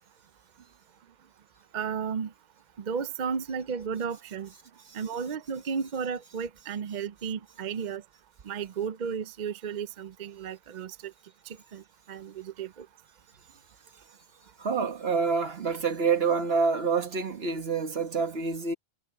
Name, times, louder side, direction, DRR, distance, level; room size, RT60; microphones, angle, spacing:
voice 1, 1.7-2.3 2.8-4.5 4.9-8.0 8.4-11.1 11.5-11.8 12.1-12.9, right 6 dB, 55° right, 0.7 m, -33 dB
voice 2, 14.6-18.7, right 5 dB, 75° right, 1.7 m, -27 dB
omnidirectional pair, 1.0 m